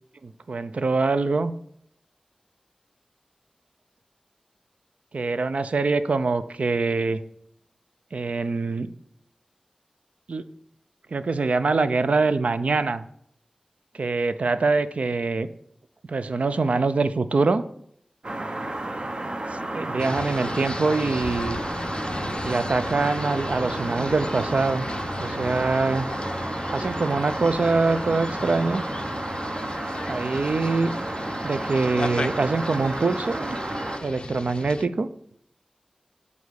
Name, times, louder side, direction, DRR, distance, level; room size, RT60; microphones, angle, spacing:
voice 1, 0.2-1.5 5.1-7.2 8.1-8.9 10.3-10.4 11.1-13.0 13.9-15.5 16.1-17.6 19.5-21.6 22.4-24.9 25.2-26.1 26.7-28.8 30.1-30.9 31.4-33.6 34.0-35.1, right 3 dB, 75° right, 12 dB, 0.5 m, -24 dB
sound 1, 18.2-34.0, right 2 dB, 50° right, 0.8 m, -32 dB
sound 2, 20.0-34.9, left 2 dB, 45° left, 0.4 m, -35 dB
7.1 x 4.2 x 6.3 m, 0.68 s
wide cardioid pair, 80°, 2 cm